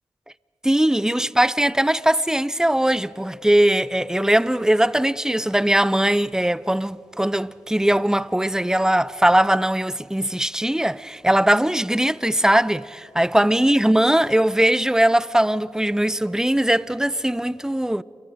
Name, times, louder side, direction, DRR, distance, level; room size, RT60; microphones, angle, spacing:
voice 1, 0.6-18.0, right 1 dB, 5° right, 0.6 m, -20 dB
29.5 x 23.0 x 5.1 m
cardioid pair, 45°, 10 cm